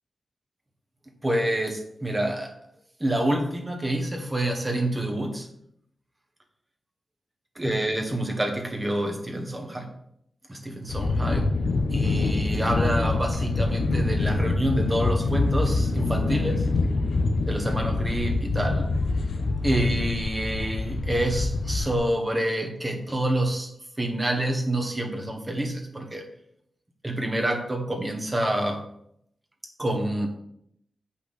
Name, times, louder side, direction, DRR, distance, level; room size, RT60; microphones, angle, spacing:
voice 1, 1.2-2.5 3.0-5.5 7.5-9.9 10.5-11.5 11.9-16.7 17.5-18.9 19.6-23.7 24.0-26.3 27.0-28.8 29.8-30.3, right 1 dB, 15° right, 3 dB, 1.3 m, -27 dB
sound 1, 10.9-22.0, left 3 dB, 90° left, 0.9 m, -25 dB
8.4 x 5.6 x 4.1 m, 0.73 s
wide cardioid pair, 140°, 0 cm